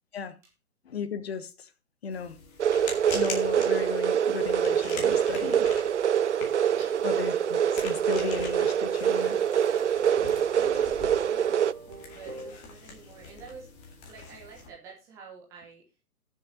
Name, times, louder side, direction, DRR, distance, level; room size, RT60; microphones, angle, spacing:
voice 1, 0.8-1.7 2.0-2.4 3.1-5.7 6.7-6.8 7.0-9.4, left 6 dB, 45° left, 1.4 m, -35 dB
sound 1, 2.1-14.7, left 4 dB, 15° left, 2.3 m, -44 dB
sound 2, 2.6-11.7, right 8 dB, 55° right, 0.5 m, -25 dB
voice 2, 6.8-7.1 10.4-11.6 12.1-13.7 14.0-15.8, right 5 dB, 5° right, 0.7 m, -48 dB
sound 3, 7.4-12.5, right 3 dB, 25° right, 1.8 m, -45 dB
20.5 x 6.9 x 2.8 m
figure-of-eight pair, 130°, 44 cm